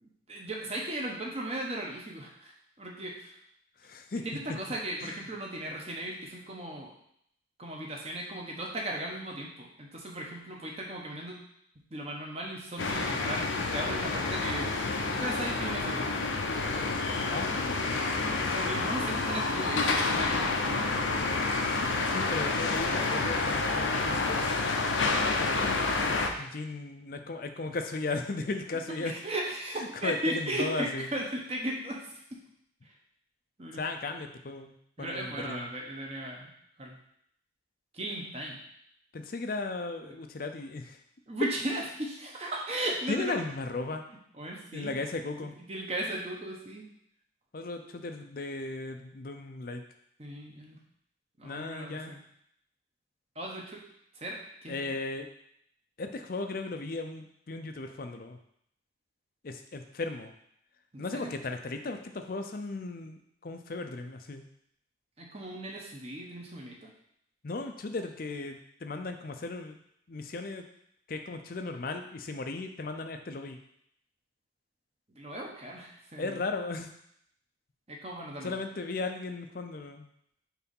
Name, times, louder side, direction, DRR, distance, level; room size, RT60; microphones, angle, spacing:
voice 1, 0.0-3.3 4.2-6.9 7.6-11.4 11.9-14.7 15.0-16.3 18.5-20.9 28.7-32.2 32.8-32.9 33.6-33.9 35.0-36.5 36.8-37.0 37.9-38.6 40.0-40.2 41.3-43.4 44.3-44.9 45.4-46.9 50.2-50.8 51.4-52.2 53.3-53.8 54.1-54.8 60.9-61.3 65.2-66.9 75.1-76.4 77.9-78.6, right 1 dB, 30° right, -1 dB, 1.0 m, -37 dB
voice 2, 3.8-4.2 5.0-5.2 17.3-18.2 22.1-24.5 25.4-25.6 26.4-29.1 30.0-31.1 33.8-35.7 39.1-41.0 43.1-44.0 44.7-45.5 47.5-49.8 51.4-52.1 54.7-55.3 56.0-58.4 59.4-60.3 61.0-64.5 67.4-69.8 70.1-70.6 71.1-73.6 76.2-76.9 78.4-80.1, left 3 dB, 45° left, 6 dB, 0.5 m, -36 dB
sound 1, 12.8-26.3, left 3 dB, 80° left, 0.7 m, -29 dB
4.6 x 3.9 x 5.3 m, 0.72 s
head